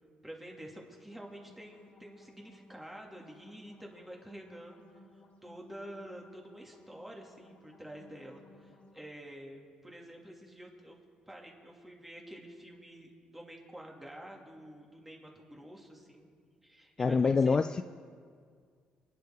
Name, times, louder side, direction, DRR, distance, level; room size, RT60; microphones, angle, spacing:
voice 1, 0.2-4.8 5.4-11.0 11.3-16.3 16.6-17.6, right 1 dB, 5° right, -1 dB, 2.8 m, -48 dB
sound 1, 1.1-9.0, left 1 dB, 55° left, 3.0 m, -59 dB
voice 2, 17.0-17.8, left 4 dB, 30° left, 11 dB, 0.3 m, -25 dB
29.0 x 10.5 x 3.9 m, 2.1 s
cardioid pair, 100°, 3 cm